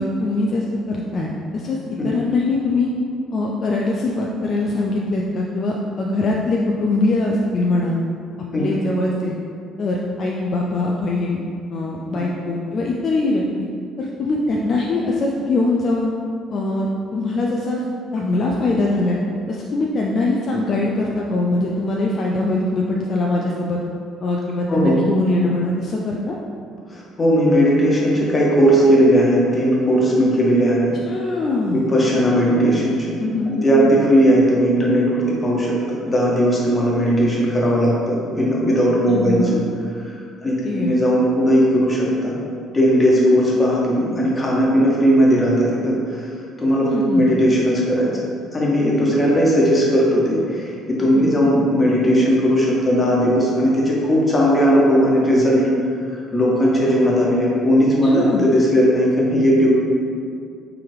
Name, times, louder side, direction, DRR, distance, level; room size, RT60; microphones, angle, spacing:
voice 1, 0.0-2.9 3.3-8.0 8.6-9.3 9.8-13.7 14.0-16.1 16.5-17.8 18.1-19.2 19.5-23.8 24.2-26.3 31.0-31.9 33.2-33.9 39.1-39.6 40.6-40.9 46.8-47.3 51.1-51.5 58.0-58.4, left 2 dB, 50° left, -2 dB, 0.4 m, -22 dB
voice 2, 26.9-30.9 31.7-33.1 33.5-39.4 40.4-42.3 42.7-46.3 46.6-48.1 48.5-55.6 56.3-59.7, equal, 25° left, -5 dB, 1.3 m, -17 dB
4.6 x 3.4 x 3.2 m, 2.4 s
hypercardioid pair, 55°, 0 cm